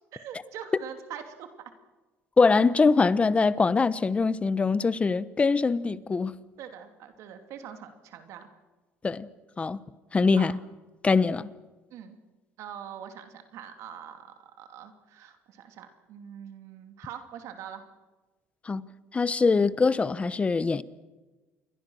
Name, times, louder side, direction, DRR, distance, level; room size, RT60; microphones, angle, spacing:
voice 1, 0.1-1.5 2.5-2.8 6.6-8.5 10.3-10.5 11.9-12.2 12.6-17.8, right 9 dB, 70° right, 2.8 m, -43 dB
voice 2, 2.4-6.4 9.0-9.3 9.6-9.8 10.1-10.6 11.0-11.5 18.6-18.8 19.1-20.8, left 4 dB, 20° left, 1.0 m, -23 dB
28.5 x 22.5 x 6.4 m
cardioid pair, 110°, 5 cm